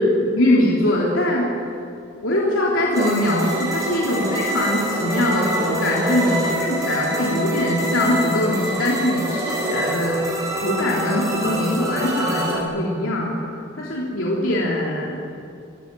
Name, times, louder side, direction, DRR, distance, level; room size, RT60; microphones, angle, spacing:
voice 1, 0.0-1.7 2.2-10.2 10.5-13.4 13.8-15.2, left 1 dB, 85° left, -4 dB, 3.5 m, -22 dB
sound 1, 2.9-12.6, right 1 dB, 15° right, 4.9 m, -26 dB
26.0 x 18.5 x 7.7 m, 2.6 s
head